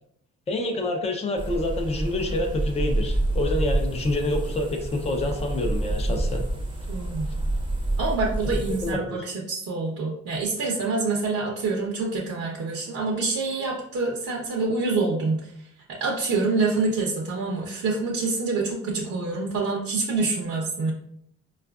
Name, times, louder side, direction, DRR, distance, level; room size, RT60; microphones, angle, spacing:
voice 1, 0.5-6.4 8.7-9.3, left 1 dB, 20° left, 3 dB, 0.5 m, -27 dB
sound 1, 1.4-8.9, right 1 dB, 15° right, 0.7 m, -28 dB
voice 2, 6.9-7.3 8.0-15.5 15.9-20.9, right 3 dB, 50° right, -3 dB, 0.7 m, -26 dB
4.3 x 2.4 x 2.3 m, 0.71 s
cardioid pair, 90°, 30 cm